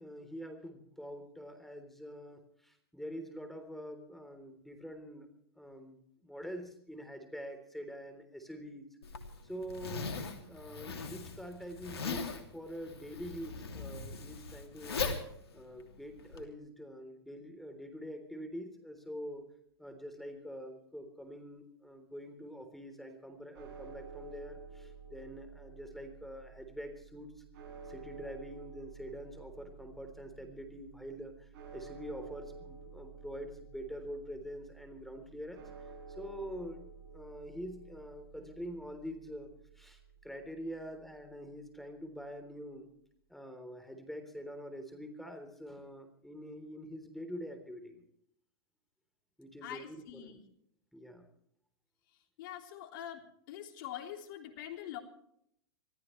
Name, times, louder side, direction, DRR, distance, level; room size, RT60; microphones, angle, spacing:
voice 1, 0.0-5.3 5.6-8.8 9.4-10.2 10.5-15.0 15.5-19.4 19.8-27.3 27.9-35.7 36.2-36.9 37.1-39.5 39.8-42.9 43.3-48.0 49.4-50.4 50.9-51.3, equal, ahead, 8 dB, 3.6 m, -45 dB
Zipper (clothing), 9.0-16.4, left 4 dB, 90° left, 3.0 m, -40 dB
sound 1, 23.5-41.8, right 4 dB, 55° right, 8.0 m, -52 dB
voice 2, 49.6-50.4 52.4-55.0, left 11 dB, 55° left, 5 dB, 3.4 m, -44 dB
26.0 x 15.0 x 3.3 m, 0.71 s
hypercardioid pair, 125°, 13 cm